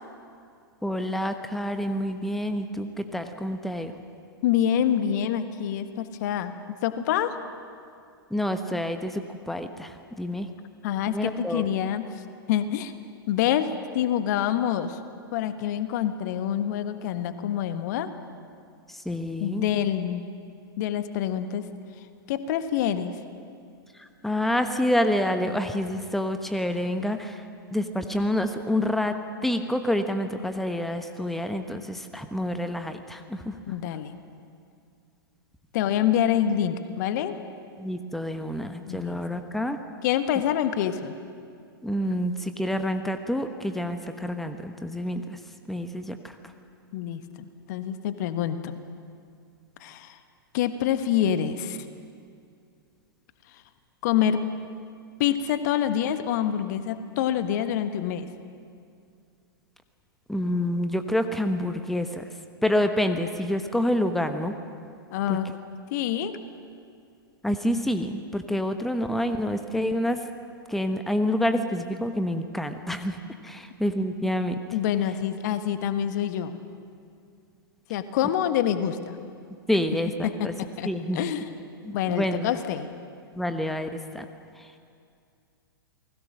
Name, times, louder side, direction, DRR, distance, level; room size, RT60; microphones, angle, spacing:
voice 1, 0.8-3.9 8.3-10.5 11.1-11.7 19.0-19.6 24.0-27.4 27.7-29.1 29.4-33.5 37.8-39.8 41.8-45.4 45.7-46.2 60.3-62.3 62.6-64.5 65.3-65.4 67.4-70.2 70.7-73.2 73.4-74.5 79.7-80.5 80.8-81.2 81.8-82.5 83.3-83.9 84.1-84.2, left 1 dB, ahead, 8 dB, 1.1 m, -27 dB
voice 2, 4.4-6.5 6.8-7.4 10.8-12.1 12.5-12.9 13.3-13.7 13.9-15.0 15.3-18.1 19.4-20.3 20.8-21.7 22.3-23.2 33.7-34.1 35.7-37.4 38.9-39.2 40.0-41.2 46.9-48.8 49.8-50.2 50.5-51.8 54.0-54.4 55.2-58.3 65.1-65.5 65.9-66.4 74.7-76.6 77.9-79.2 80.2-80.9 81.1-81.5 81.9-82.9, left 10 dB, 50° left, 10 dB, 1.4 m, -26 dB
29.0 x 20.5 x 6.4 m, 2.3 s
figure-of-eight pair, 105°, 12 cm